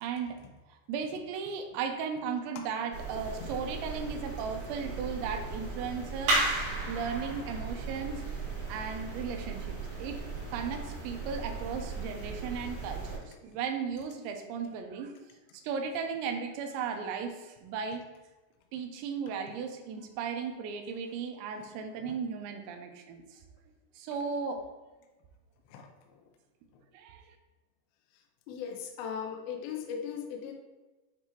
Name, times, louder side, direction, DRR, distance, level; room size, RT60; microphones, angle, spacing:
voice 1, 0.0-0.4 0.7-8.1 8.7-10.2 10.5-15.1 15.6-18.0 18.7-23.2 24.0-24.6 26.9-27.4, right 6 dB, 85° right, 5 dB, 2.9 m, -36 dB
sound 1, 2.9-13.2, right 2 dB, 50° right, 3.1 m, -35 dB
voice 2, 25.7-26.2 28.5-30.5, left 7 dB, 90° left, 2 dB, 2.1 m, -39 dB
9.6 x 3.4 x 2.9 m, 1.1 s
omnidirectional pair, 5.2 m